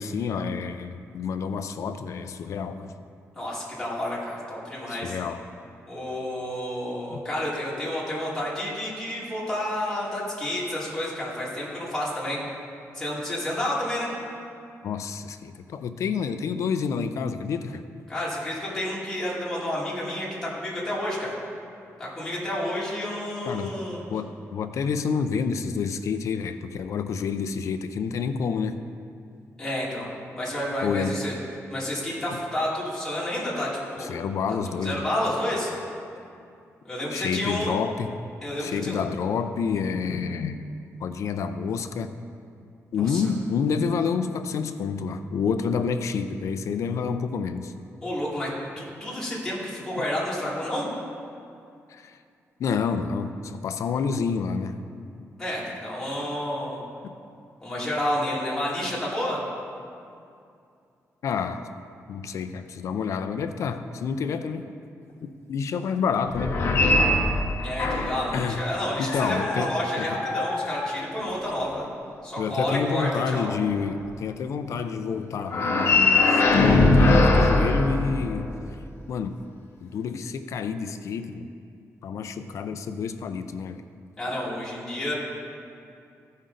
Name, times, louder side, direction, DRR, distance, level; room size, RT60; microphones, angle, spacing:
voice 1, 0.0-2.9 4.9-5.4 7.1-7.2 14.8-17.8 23.5-23.7 24.1-28.8 30.8-31.2 32.3-32.4 34.0-35.0 37.1-38.1 38.6-40.6 41.0-42.1 42.9-47.7 51.9-52.2 52.6-54.8 61.2-61.6 62.1-64.6 65.5-66.6 68.3-68.6 69.0-69.7 70.0-70.1 72.4-78.5 79.1-79.4 79.8-81.5 82.0-83.8, left 6 dB, 70° left, 9 dB, 0.4 m, -28 dB
voice 2, 3.4-5.2 5.9-12.4 12.9-14.1 18.1-21.3 22.0-24.0 29.6-31.4 31.7-34.2 34.7-35.7 36.8-37.8 38.4-39.0 43.0-43.3 48.0-50.9 55.4-56.8 57.6-59.4 67.6-71.9 72.2-73.5 84.2-85.1, left 1 dB, 10° left, -8 dB, 2.2 m, -30 dB
sound 1, 66.3-68.3 68.9-71.4 75.5-78.6, left 2 dB, 50° left, 0.8 m, -21 dB
14.5 x 5.3 x 3.8 m, 2.5 s
wide cardioid pair, 160°, 5 cm